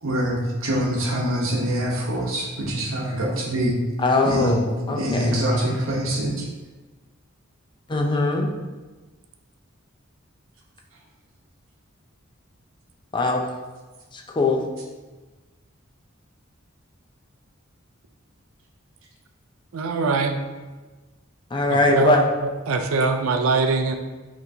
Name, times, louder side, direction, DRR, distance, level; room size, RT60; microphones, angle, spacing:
voice 1, 0.0-3.7 4.2-4.6 4.9-6.4, right 1 dB, 70° right, -2 dB, 0.9 m, -24 dB
voice 2, 4.0-5.4 7.9-8.5 13.1-13.5 14.1-14.6 21.5-22.3, left 2 dB, 25° left, 1 dB, 0.4 m, -21 dB
voice 3, 19.7-20.4 21.9-22.2 22.7-24.0, right 4 dB, 90° right, 6 dB, 0.4 m, -21 dB
5.6 x 3.0 x 2.7 m, 1.3 s
head